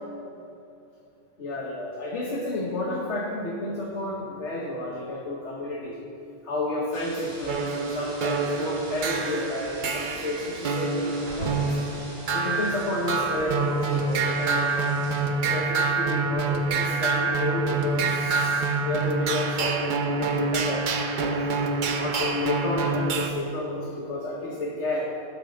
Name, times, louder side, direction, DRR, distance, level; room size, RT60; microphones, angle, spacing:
voice 1, 1.4-6.0 6.4-11.8 12.3-14.9 15.4-20.8 21.9-25.1, left 1 dB, 70° left, -2 dB, 1.3 m, -31 dB
sound 1, 6.9-15.2, right 1 dB, 75° right, 2.5 m, -41 dB
sound 2, 7.5-23.3, right 4 dB, 50° right, 0.7 m, -27 dB
13.0 x 4.5 x 5.2 m, 2.8 s
omnidirectional pair, 1.3 m